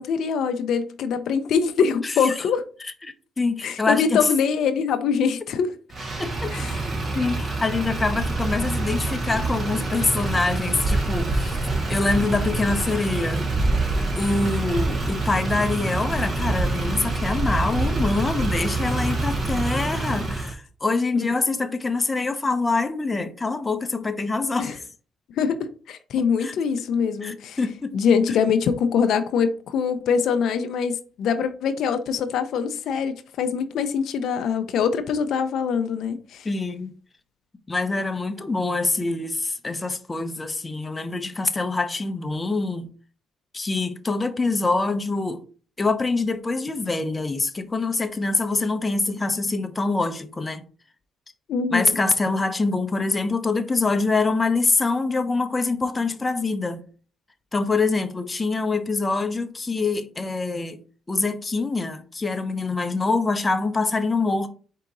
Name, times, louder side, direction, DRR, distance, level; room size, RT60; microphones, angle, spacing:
voice 1, 0.0-2.7 3.6-5.7 6.5-6.8 21.1-21.3 24.6-24.7 25.3-27.6 27.9-36.5 51.5-52.0, left 6 dB, 75° left, 0.4 m, -23 dB
voice 2, 2.0-2.4 3.0-4.3 6.2-6.6 7.1-11.6 11.9-13.5 14.2-24.8 26.4-26.5 27.2-27.9 36.4-36.9 37.7-42.9 43.5-45.4 45.8-50.6 51.7-56.8 57.5-60.8 61.1-64.5, left 3 dB, 25° left, 0.6 m, -25 dB
Motor vehicle (road), 5.9-20.5, right 2 dB, 40° right, 1.2 m, -26 dB
4.6 x 2.8 x 3.7 m
cardioid pair, 85°, 0 cm